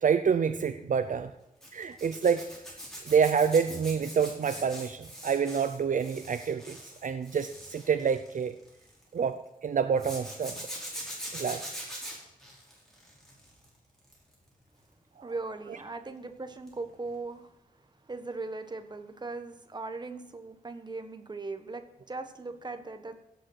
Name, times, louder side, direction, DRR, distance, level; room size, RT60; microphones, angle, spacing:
voice 1, 0.0-1.3 1.7-2.5 3.1-8.5 9.1-10.6 11.3-11.7 15.2-15.3, right 6 dB, 60° right, 10 dB, 0.6 m, -27 dB
Zipper (clothing), 1.6-9.0 10.0-13.6 14.0-14.3 16.7-16.8 17.1-17.2, equal, 5° left, 5.0 m, -42 dB
voice 2, 15.2-17.6 18.1-23.2, right 3 dB, 30° right, 7 dB, 1.3 m, -39 dB
16.5 x 7.8 x 6.3 m, 0.93 s
wide cardioid pair, 150°, 15 cm